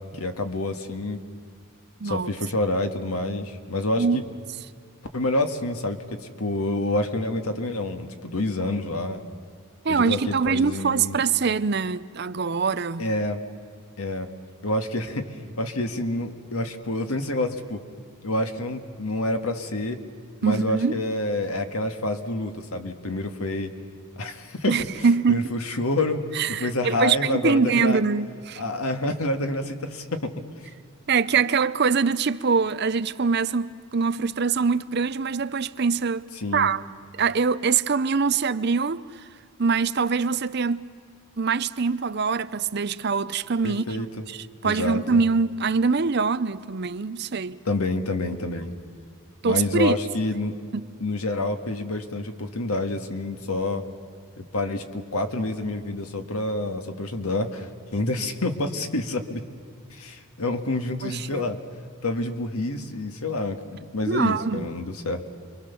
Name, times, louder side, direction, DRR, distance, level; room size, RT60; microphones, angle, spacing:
voice 1, 0.1-1.2 2.0-4.2 5.1-6.0 6.4-9.2 9.9-11.2 13.0-13.4 14.0-14.3 14.6-17.8 18.2-20.0 20.4-23.7 24.2-25.0 25.3-26.2 26.5-28.0 28.6-30.3 36.4-36.7 43.6-44.1 44.6-45.2 47.7-48.8 49.4-50.6 51.0-53.8 54.4-59.4 59.9-61.6 62.0-63.6 63.9-65.2, left 2 dB, 90° left, 1.8 m, -28 dB
voice 2, 9.8-13.0 20.4-21.0 24.7-25.5 26.3-28.6 31.1-36.2 36.5-36.8 37.2-39.0 39.6-40.9 41.4-43.8 44.3-47.6 49.4-50.0 50.7-50.9 61.0-61.4 64.1-64.7, right 5 dB, 50° right, 0.6 m, -23 dB
28.5 x 23.0 x 7.0 m
head